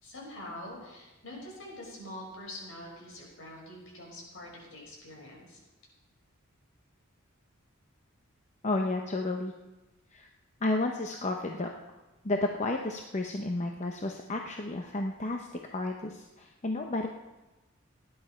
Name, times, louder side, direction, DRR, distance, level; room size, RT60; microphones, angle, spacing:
voice 1, 0.0-5.6, left 1 dB, 65° left, -2 dB, 5.3 m, -45 dB
voice 2, 8.6-9.5 10.1-10.3 10.6-11.7 12.2-17.1, left 2 dB, 35° left, 3 dB, 0.8 m, -32 dB
17.5 x 10.5 x 4.4 m, 1.1 s
head